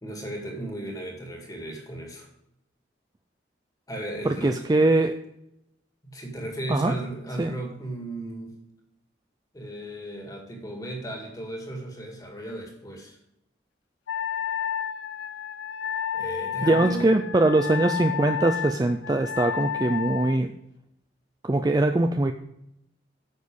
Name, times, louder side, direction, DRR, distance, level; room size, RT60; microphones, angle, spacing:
voice 1, 0.0-2.3 3.9-4.6 5.0-5.1 6.0-8.6 9.5-13.2 16.1-17.1, right 1 dB, 20° left, 1 dB, 2.0 m, -35 dB
voice 2, 4.2-5.2 6.7-6.9 7.4-7.5 16.6-20.5 21.4-22.3, right 2 dB, 20° right, 6 dB, 0.4 m, -22 dB
Wind instrument woodwind instrument, 14.1-20.4, left 8 dB, 80° left, 0.4 m, -31 dB
9.5 x 6.5 x 5.3 m, 0.82 s
head